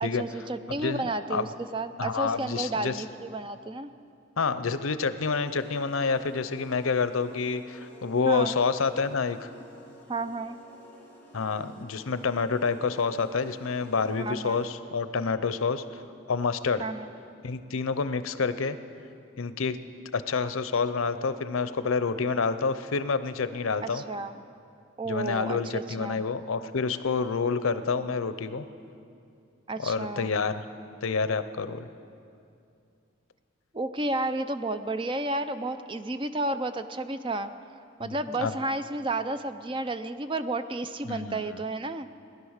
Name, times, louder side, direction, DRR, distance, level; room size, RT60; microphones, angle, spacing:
voice 1, 0.0-1.5 1.7-3.9 8.3-8.6 10.1-10.6 14.2-14.6 16.8-17.1 23.8-24.4 25.0-26.2 29.7-30.3 33.7-37.5 38.0-42.1, right 2 dB, 25° right, 10 dB, 0.5 m, -32 dB
voice 2, 0.8-1.5 2.0-3.0 4.4-9.5 11.3-15.8 16.3-16.8 17.4-18.8 19.4-19.8 20.1-24.0 25.0-28.6 29.8-30.6 31.0-31.9 38.0-38.5 41.1-41.6, left 5 dB, 85° left, 12 dB, 0.7 m, -28 dB
sound 1, 5.4-14.7, equal, 10° left, 2.4 m, -51 dB
18.5 x 11.0 x 6.5 m, 2.5 s
head